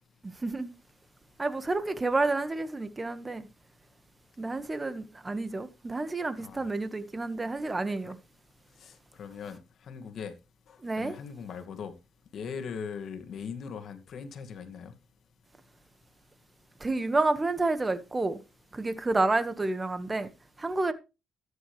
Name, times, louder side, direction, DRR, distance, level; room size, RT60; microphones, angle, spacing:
voice 1, 0.2-0.7 1.4-3.5 4.4-8.2 10.8-11.1 16.8-18.4 18.7-20.3 20.6-20.9, right 2 dB, 20° right, 1.6 m, -29 dB
voice 2, 8.8-10.4 10.7-11.9 12.3-14.9, left 6 dB, 60° left, 2.2 m, -40 dB
13.5 x 10.0 x 3.4 m
cardioid pair, 90°, 0 cm